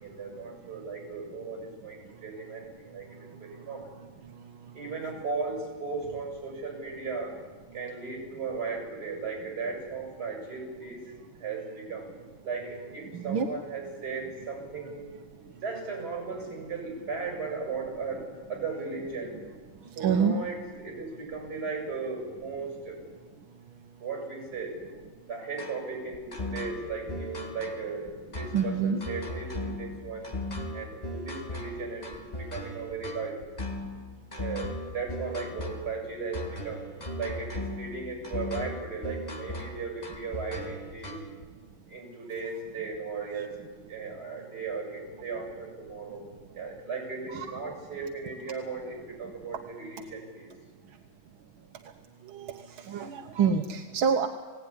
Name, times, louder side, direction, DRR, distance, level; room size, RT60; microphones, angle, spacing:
voice 1, 0.0-3.9 4.7-7.4 7.7-11.0 11.4-12.1 12.4-15.1 15.6-19.4 20.0-23.0 24.0-24.8 25.3-30.3 30.7-33.4 34.3-36.8 37.2-41.2 41.9-43.6 43.9-46.2 46.5-50.5, right 4 dB, 50° right, 2 dB, 7.5 m, -36 dB
voice 2, 13.1-13.5 20.0-20.4 28.5-29.0 29.6-29.7 47.3-47.6 52.3-52.6 52.9-54.3, right 6 dB, 85° right, 5 dB, 1.8 m, -27 dB
sound 1, 25.6-41.4, left 1 dB, 20° left, 2.0 m, -38 dB
21.0 x 17.0 x 9.8 m, 1.4 s
omnidirectional pair, 2.2 m